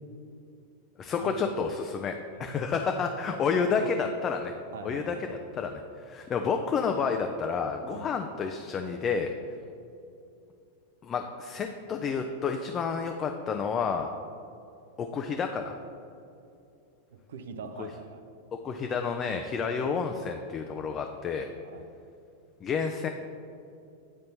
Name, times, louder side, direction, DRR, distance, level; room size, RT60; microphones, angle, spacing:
voice 1, 1.0-4.5 4.8-9.3 11.0-14.1 15.0-15.7 18.6-21.5 22.6-23.1, left 5 dB, 25° left, 5 dB, 0.3 m, -30 dB
voice 2, 2.3-2.7 3.7-3.9 4.7-5.2 7.9-8.1 17.1-18.2 19.7-19.8 21.6-21.9, right 5 dB, 60° right, 7 dB, 0.4 m, -43 dB
9.0 x 4.2 x 2.7 m, 2.6 s
figure-of-eight pair, 90°, 0 cm